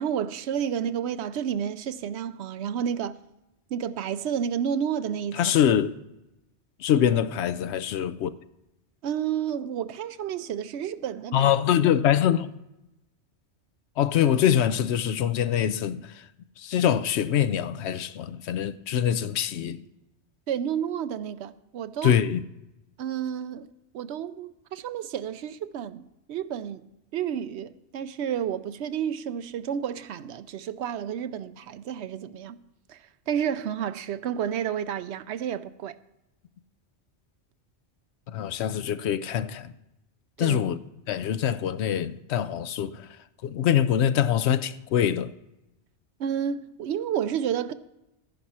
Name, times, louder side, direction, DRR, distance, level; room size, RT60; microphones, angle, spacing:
voice 1, 0.0-3.1 3.7-5.6 9.0-11.5 20.5-22.1 23.0-23.7 23.9-26.9 27.1-32.6 32.9-35.9 40.4-40.6 46.2-47.7, right 8 dB, 75° right, 0.8 m, -30 dB
voice 2, 5.4-5.9 6.8-8.3 11.3-12.5 14.0-16.1 16.6-19.8 22.0-22.4 38.3-39.7 40.4-40.8 41.1-43.1 43.4-45.3, left 9 dB, 70° left, 0.8 m, -24 dB
14.0 x 10.5 x 4.3 m
omnidirectional pair, 1.2 m